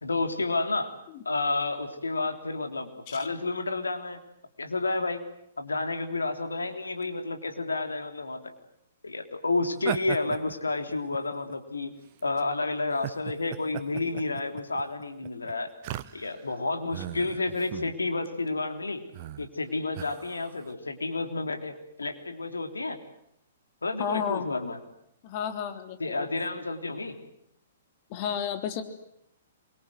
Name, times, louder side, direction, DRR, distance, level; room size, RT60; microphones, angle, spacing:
voice 1, 0.0-0.9 1.3-4.2 4.6-5.2 5.6-8.5 9.0-11.9 12.2-15.7 16.1-19.1 19.4-23.0 23.8-24.8 26.0-27.2, left 3 dB, 80° left, 7 dB, 3.5 m, -30 dB
sound 1, 9.8-11.6 12.2-12.4 12.9-16.5 16.9-17.9 18.3-18.5 19.1-19.5 20.0-20.7, right 14 dB, 45° right, 1.6 m, -37 dB
voice 2, 24.0-24.5 25.2-26.3 28.1-28.8, left 8 dB, 40° left, 7 dB, 3.5 m, -32 dB
27.5 x 24.0 x 7.8 m, 0.76 s
figure-of-eight pair, 115°, 0 cm